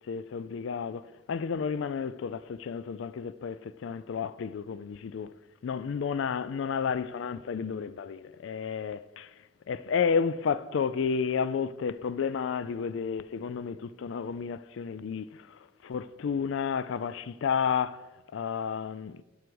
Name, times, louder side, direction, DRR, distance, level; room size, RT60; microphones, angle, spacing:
voice 1, 0.1-5.3 5.6-9.3 9.7-18.0 18.3-19.2, left 6 dB, 65° left, 0.3 m, -31 dB
12.5 x 4.9 x 4.7 m
head